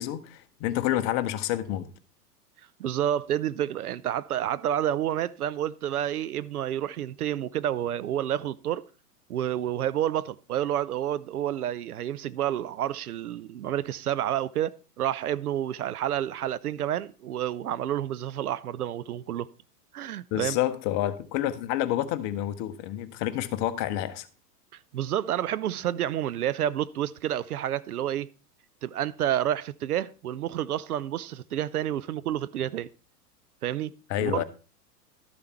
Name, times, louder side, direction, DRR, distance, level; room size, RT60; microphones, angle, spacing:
voice 1, 0.0-1.9 20.3-24.3 34.1-34.4, left 12 dB, 35° left, 0.9 m, -28 dB
voice 2, 2.8-8.8 9.3-19.5 19.9-20.6 24.9-28.3 28.8-32.9 33.6-33.9 34.2-34.4, right 11 dB, 65° right, 0.6 m, -29 dB
12.5 x 6.8 x 4.4 m
figure-of-eight pair, 95°, 48 cm